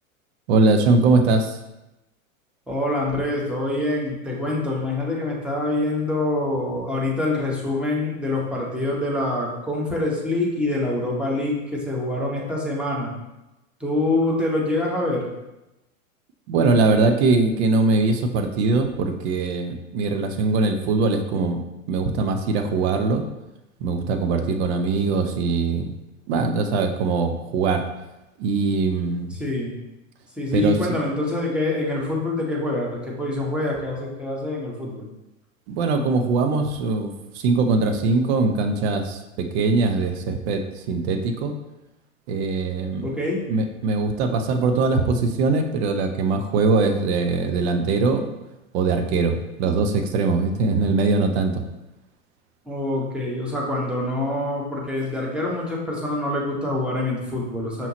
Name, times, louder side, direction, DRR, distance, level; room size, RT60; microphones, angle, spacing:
voice 1, 0.5-1.6 16.5-21.6 21.9-23.2 23.8-25.9 26.3-27.8 28.4-29.4 30.5-30.8 35.7-41.5 42.3-43.1 43.5-48.2 48.7-51.6, right 3 dB, 50° right, 6 dB, 0.7 m, -21 dB
voice 2, 2.7-13.1 13.8-15.3 29.3-29.8 30.4-35.1 43.0-43.4 52.7-57.9, left 2 dB, 5° right, -3 dB, 1.0 m, -25 dB
5.4 x 2.9 x 2.9 m, 0.97 s
hypercardioid pair, 95°, 41 cm